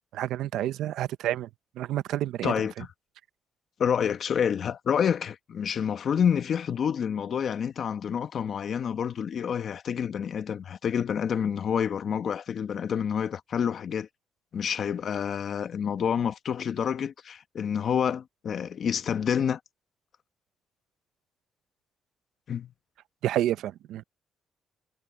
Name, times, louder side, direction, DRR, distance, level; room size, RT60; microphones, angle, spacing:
voice 1, 0.1-1.5 1.7-2.9 23.2-24.0, right 13 dB, 85° right, 0.7 m, -29 dB
voice 2, 2.4-2.7 3.8-14.1 14.5-19.6 22.5-22.7, left 8 dB, 55° left, 1.4 m, -28 dB
cardioid pair, 90°, 0 cm